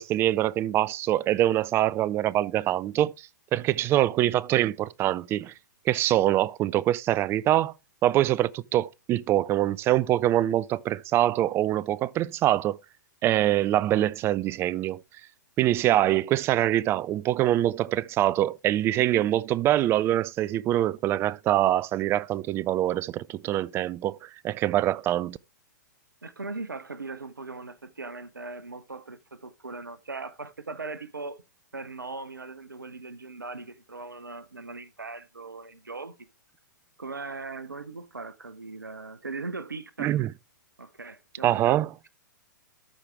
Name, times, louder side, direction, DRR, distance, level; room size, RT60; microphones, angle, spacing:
voice 1, 0.0-5.5 5.9-7.7 8.0-12.8 13.2-15.0 15.6-25.4 40.0-40.3 41.4-41.9, right 13 dB, 25° right, 0.4 m, -24 dB
voice 2, 26.2-31.4 31.7-36.1 37.0-40.3 40.8-42.1, right 3 dB, 90° right, 0.7 m, -39 dB
13.0 x 5.0 x 3.3 m
figure-of-eight pair, 110°, 10 cm